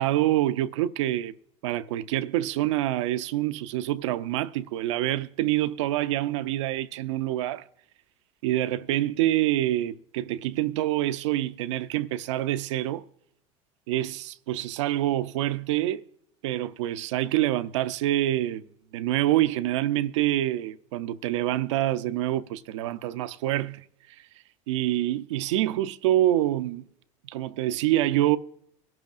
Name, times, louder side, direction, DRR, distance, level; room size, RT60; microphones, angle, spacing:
voice 1, 0.0-1.3 1.6-7.6 8.4-13.1 13.9-16.1 16.4-18.7 18.9-23.8 24.2-24.3 24.7-26.8 27.3-28.4, right 14 dB, 85° right, 0.6 m, -26 dB
23.0 x 12.0 x 2.5 m
supercardioid pair, 90°, 15 cm